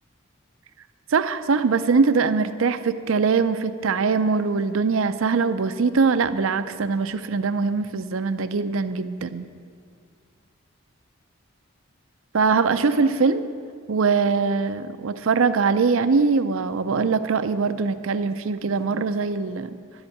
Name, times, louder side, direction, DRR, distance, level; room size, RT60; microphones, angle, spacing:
voice 1, 1.1-9.5 12.3-13.4 13.9-19.7, right 4 dB, 75° right, 11 dB, 0.5 m, -22 dB
11.0 x 7.9 x 9.7 m, 2.1 s
head